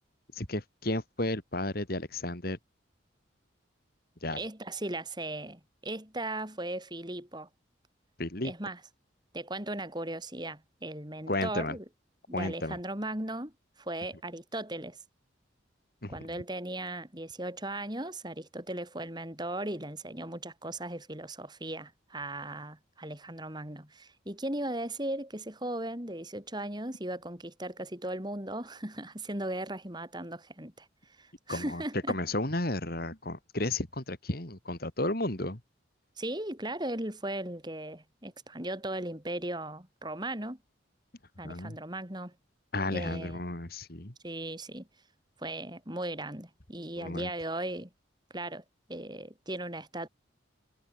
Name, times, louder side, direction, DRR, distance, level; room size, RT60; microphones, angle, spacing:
voice 1, 0.3-2.6 4.2-4.4 8.2-8.5 11.3-11.8 12.3-12.8 16.0-16.1 31.5-31.8 32.1-35.6 41.4-41.8 42.7-44.1 47.0-47.3, left 2 dB, 50° left, 3.0 m, -33 dB
voice 2, 4.3-7.5 8.4-8.8 9.3-11.8 12.3-15.0 16.1-32.2 36.2-40.6 41.4-42.3 42.9-43.4 44.2-44.9 45.4-47.9 48.3-48.6 48.9-50.1, right 1 dB, 20° right, 3.6 m, -37 dB
head